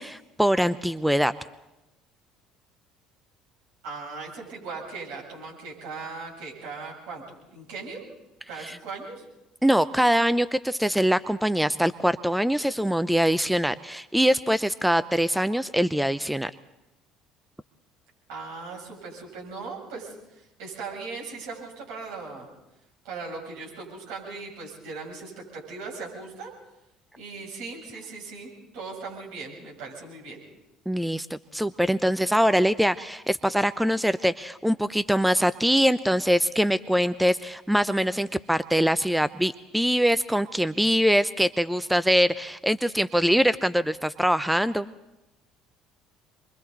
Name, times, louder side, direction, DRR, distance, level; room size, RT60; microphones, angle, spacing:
voice 1, 0.0-1.3 8.6-8.8 9.6-16.5 30.9-44.9, equal, 5° right, 14 dB, 0.7 m, -23 dB
voice 2, 3.8-7.2 7.5-8.0 8.5-9.2 18.3-22.5 23.0-26.5 27.2-30.4, right 4 dB, 70° right, -3 dB, 7.6 m, -38 dB
27.5 x 23.0 x 4.1 m, 0.97 s
hypercardioid pair, 60°, 0 cm